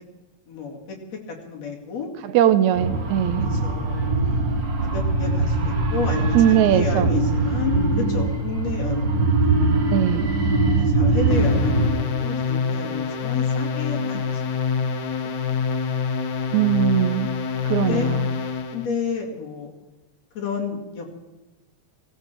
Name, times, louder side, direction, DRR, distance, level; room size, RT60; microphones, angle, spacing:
voice 1, 0.5-2.1 3.5-4.2 4.8-9.3 9.7-9.8 10.8-14.5 17.7-18.1 18.7-19.7 20.3-21.1, left 5 dB, 65° left, -1 dB, 3.6 m, -31 dB
voice 2, 2.3-3.5 6.3-7.1 9.9-10.3 13.9-14.0 16.5-17.3 17.7-18.3, right 11 dB, 80° right, 11 dB, 2.1 m, -20 dB
sound 1, 2.7-11.9, right 2 dB, 45° right, 1.9 m, -22 dB
sound 2, 11.3-18.9, left 5 dB, 90° left, 0.9 m, -26 dB
17.5 x 17.0 x 4.5 m, 1.1 s
omnidirectional pair, 3.3 m